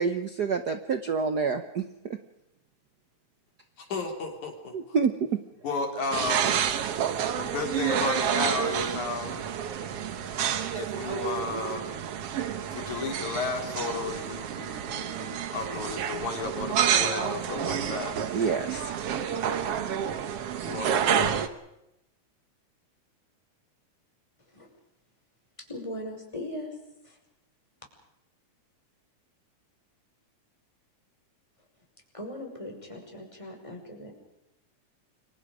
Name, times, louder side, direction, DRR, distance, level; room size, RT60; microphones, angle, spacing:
voice 1, 0.0-1.8 4.9-5.1 18.3-18.9, right 5 dB, 75° right, 8 dB, 0.9 m, -27 dB
voice 2, 3.8-5.0 5.6-6.8 7.3-9.5 10.8-11.9 12.6-18.2 20.6-21.4, left 4 dB, 80° left, 3 dB, 4.7 m, -33 dB
sound 1, 6.1-21.5, right 8 dB, 60° right, 2.0 m, -29 dB
voice 3, 25.6-26.8 27.0-27.2 32.1-34.1, left 1 dB, 10° left, 1 dB, 5.7 m, -39 dB
29.5 x 24.0 x 5.1 m, 0.87 s
omnidirectional pair, 3.4 m